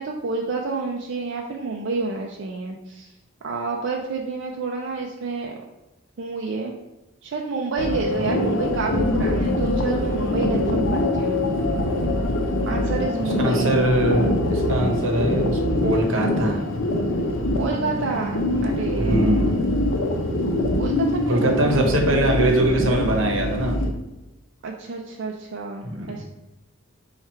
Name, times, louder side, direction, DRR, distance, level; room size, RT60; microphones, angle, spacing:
voice 1, 0.0-3.1 3.4-5.6 6.2-6.8 7.2-11.4 12.7-13.7 17.6-19.3 20.8-22.1 22.4-22.7 24.6-26.2, right 4 dB, 60° right, 0 dB, 0.4 m, -29 dB
sound 1, 7.8-23.9, left 1 dB, 70° left, 0.6 m, -23 dB
voice 2, 13.4-16.6 19.0-19.7 21.3-23.8 25.8-26.2, right 1 dB, 80° right, 1 dB, 0.9 m, -22 dB
4.5 x 2.4 x 4.3 m, 1.0 s
head